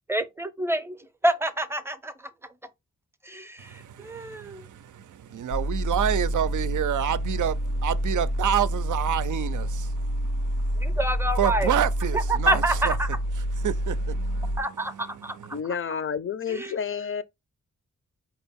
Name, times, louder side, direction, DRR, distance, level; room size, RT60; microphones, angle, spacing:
voice 1, 0.1-2.3 3.2-4.6 10.8-11.7 12.3-13.1 14.6-15.4 16.5-16.7, right 1 dB, 10° right, 0.6 m, -28 dB
voice 2, 3.6-11.0 11.3-13.0 13.3-15.6, right 10 dB, 70° right, 0.4 m, -29 dB
sound 1, 5.5-14.6, equal, 80° left, 0.8 m, -28 dB
voice 3, 15.5-17.2, left 7 dB, 40° left, 0.5 m, -30 dB
4.4 x 2.4 x 3.4 m
cardioid pair, 55°, 32 cm